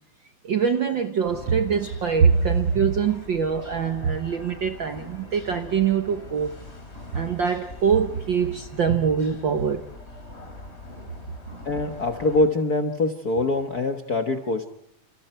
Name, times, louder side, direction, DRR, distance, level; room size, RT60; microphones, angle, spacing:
voice 1, 0.4-6.5 7.1-9.8, right 6 dB, 60° right, 1.3 m, -23 dB
sound 1, 1.2-12.5, left 2 dB, 20° left, 3.4 m, -42 dB
voice 2, 11.6-14.7, left 2 dB, 45° left, 1.3 m, -24 dB
29.5 x 28.5 x 4.5 m
omnidirectional pair, 3.4 m